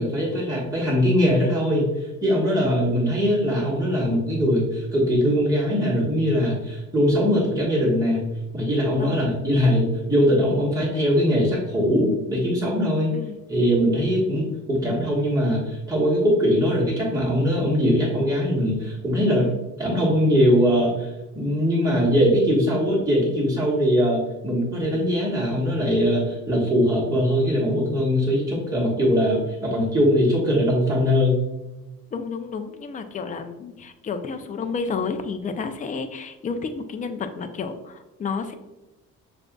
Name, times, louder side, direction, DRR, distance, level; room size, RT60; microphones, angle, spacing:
voice 1, 0.0-8.2 8.5-13.1 13.5-19.5 19.8-21.1 21.3-31.4, equal, 10° right, -7 dB, 1.4 m, -21 dB
voice 2, 32.1-38.5, left 5 dB, 25° left, 8 dB, 0.4 m, -31 dB
6.4 x 2.5 x 2.3 m, 1.0 s
cardioid pair, 95°, 33 cm